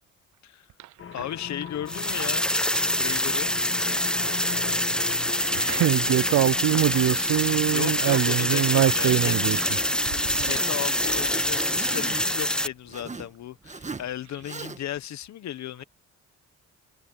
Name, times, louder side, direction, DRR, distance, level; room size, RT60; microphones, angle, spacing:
sound 1, 1.0-12.7, left 7 dB, 45° left, 1.6 m, -40 dB
voice 1, 1.1-2.5 3.0-3.5 6.0-6.2 7.7-9.4 10.4-15.8, left 11 dB, 65° left, 1.2 m, -35 dB
sound 2, 1.9-12.7, left 1 dB, 5° left, 1.0 m, -25 dB
voice 2, 5.5-9.6, right 14 dB, 70° right, 0.6 m, -23 dB
Zipper (clothing), 6.8-13.3 13.6-14.1 14.4-15.0, right 4 dB, 25° right, 1.6 m, -40 dB
cardioid pair, 90°, 30 cm